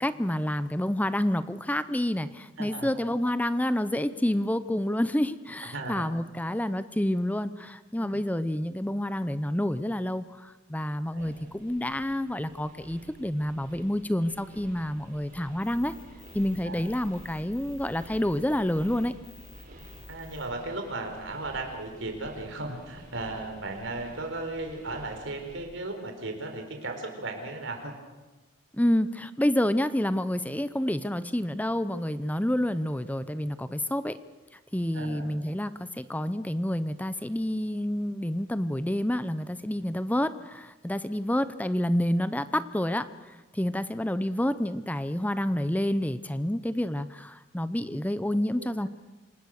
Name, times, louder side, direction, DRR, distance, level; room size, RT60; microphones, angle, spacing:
voice 1, 0.0-15.9 16.3-19.1 28.8-34.2 34.7-48.9, left 1 dB, 10° left, 13 dB, 0.7 m, -28 dB
voice 2, 2.6-2.9 5.7-6.1 8.0-8.2 11.1-11.3 16.6-16.8 20.1-27.9 34.9-35.3, right 2 dB, 70° right, 4 dB, 4.3 m, -36 dB
sound 1, 11.2-25.6, right 1 dB, 45° right, 7.8 m, -51 dB
sound 2, 15.6-20.5, left 2 dB, 65° left, 6.5 m, -49 dB
28.0 x 19.0 x 6.6 m, 1.2 s
head